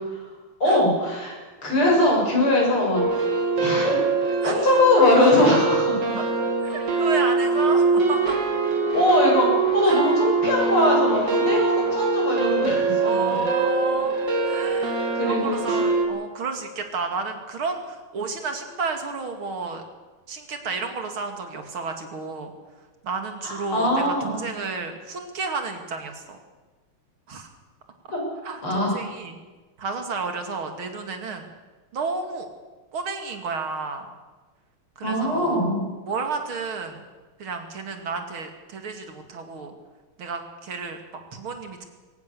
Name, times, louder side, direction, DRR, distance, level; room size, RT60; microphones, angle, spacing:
voice 1, 0.6-1.4 1.6-6.2 8.9-9.5 9.7-13.4 15.1-15.6 23.4-24.4 28.1-28.2 28.6-29.0 35.0-35.9, left 1 dB, 80° left, -2 dB, 8.3 m, -22 dB
sound 1, 3.0-16.1, right 4 dB, 55° right, 3.3 m, -23 dB
voice 2, 6.6-8.4 9.8-10.0 11.4-11.6 13.0-19.8 20.3-22.5 23.0-26.4 27.3-27.5 28.4-29.4 29.8-31.5 31.9-32.5 32.9-34.1 35.0-35.6 36.1-37.0 37.4-39.7 40.2-41.9, right 4 dB, 75° right, 5 dB, 3.2 m, -31 dB
22.0 x 19.0 x 7.1 m, 1.3 s
omnidirectional pair, 2.3 m